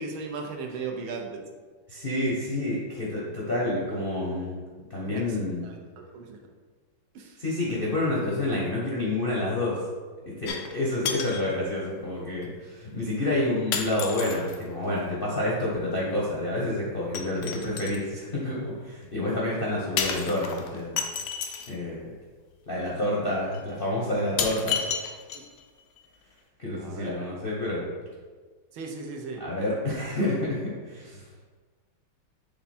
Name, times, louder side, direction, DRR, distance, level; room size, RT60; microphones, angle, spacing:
voice 1, 0.0-1.4 5.0-5.4 5.6-6.4 7.1-7.4 17.5-17.6 22.8-23.1 25.3-25.4 26.8-27.2 28.7-29.4, right 4 dB, 75° right, 2 dB, 1.5 m, -37 dB
voice 2, 1.9-4.6 4.9-5.7 7.4-9.8 10.3-21.0 21.7-22.1 22.7-24.8 26.6-27.9 29.4-31.2, left 1 dB, 50° left, -6 dB, 0.6 m, -29 dB
sound 1, 10.5-10.8 11.0-11.5 12.4-12.5 13.7-14.6 17.1-18.0 20.0-21.7 22.9-23.0 23.5-23.6 24.4-25.6 26.0-26.1, left 7 dB, 85° left, 0.8 m, -31 dB
6.6 x 3.4 x 4.2 m, 1.5 s
omnidirectional pair, 2.3 m